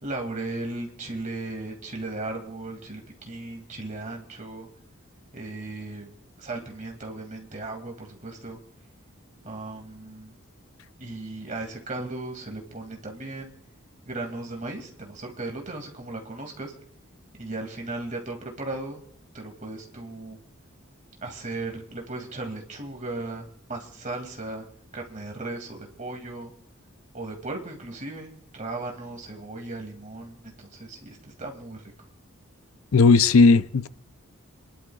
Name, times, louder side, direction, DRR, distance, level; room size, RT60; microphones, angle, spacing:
voice 1, 0.0-4.7 5.3-8.6 9.4-10.3 11.0-13.5 14.1-16.7 17.3-19.1 19.3-20.4 21.2-24.7 24.9-26.5 27.1-31.8, right 2 dB, 35° right, 2.5 m, -36 dB
voice 2, 32.9-33.9, left 4 dB, 75° left, 0.6 m, -16 dB
29.5 x 11.5 x 2.4 m
head